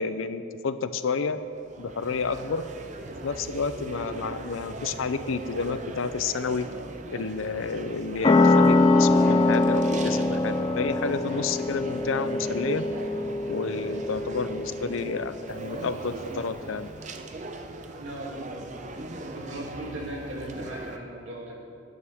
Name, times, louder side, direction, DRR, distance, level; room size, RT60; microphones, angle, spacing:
voice 1, 0.0-1.4 1.8-2.6 3.2-6.7 7.1-12.8 13.5-16.9, left 5 dB, 80° left, 12 dB, 0.5 m, -30 dB
sound 1, 1.2-21.0, right 2 dB, 35° right, 0.6 m, -39 dB
sound 2, 8.2-15.4, left 2 dB, 25° left, 0.5 m, -23 dB
voice 2, 17.9-18.3 19.3-21.5, right 1 dB, 70° right, -3 dB, 2.8 m, -37 dB
18.0 x 9.6 x 3.6 m, 2.5 s
head